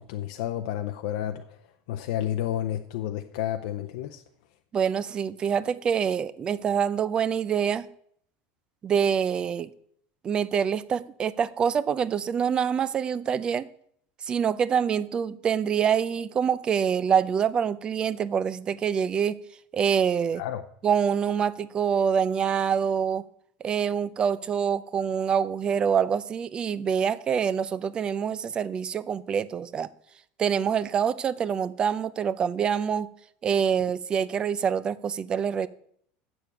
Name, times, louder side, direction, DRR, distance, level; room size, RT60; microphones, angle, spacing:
voice 1, 0.0-1.4 1.9-4.2 20.4-20.6, left 11 dB, 75° left, 5 dB, 0.7 m, -30 dB
voice 2, 4.7-7.9 8.8-9.7 10.2-13.7 14.3-19.4 19.7-20.4 20.8-23.2 23.6-29.9 30.4-33.1 33.4-35.7, right 7 dB, 20° right, 17 dB, 0.4 m, -25 dB
7.5 x 7.0 x 8.3 m, 0.66 s
cardioid pair, 170°, 4 cm